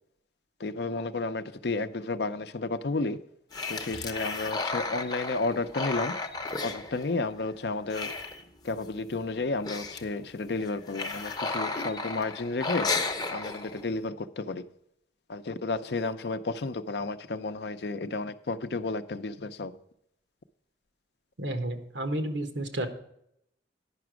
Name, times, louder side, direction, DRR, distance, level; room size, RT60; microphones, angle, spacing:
voice 1, 0.6-3.2 3.7-6.2 6.6-8.1 8.6-12.9 13.3-14.6 15.3-19.8, left 3 dB, 65° left, 0.6 m, -32 dB
sound 1, 3.5-7.5 7.8-8.9 9.2-9.3 9.5-10.1 10.6-14.0, left 3 dB, 20° left, 0.7 m, -33 dB
voice 2, 21.4-22.9, right 1 dB, 90° right, 1.3 m, -31 dB
9.8 x 6.0 x 6.2 m
head